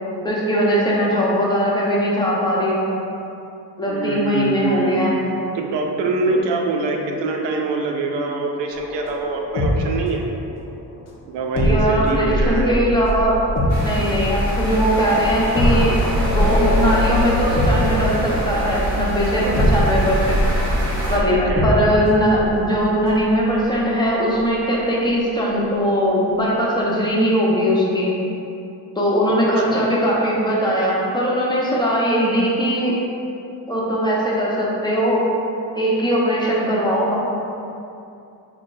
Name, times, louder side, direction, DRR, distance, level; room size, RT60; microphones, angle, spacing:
voice 1, 0.2-2.9 3.8-5.2 6.3-6.4 11.6-13.5 13.8-15.9 16.2-20.4 21.1-28.1 28.9-32.9 33.7-35.2 35.7-37.2, equal, 10° left, -5 dB, 0.8 m, -20 dB
voice 2, 3.9-5.1 5.5-10.2 11.3-12.8 19.4-19.6 21.3-21.7 29.6-29.9, right 3 dB, 85° right, 2 dB, 0.6 m, -24 dB
sound 1, 8.7-10.5 10.8-10.9 11.6-24.0 24.3-24.5, left 1 dB, 40° left, 0.7 m, -23 dB
sound 2, 13.7-21.2, equal, 40° right, 1.4 m, -25 dB
5.8 x 2.2 x 2.6 m, 2.7 s
cardioid pair, 70°, 42 cm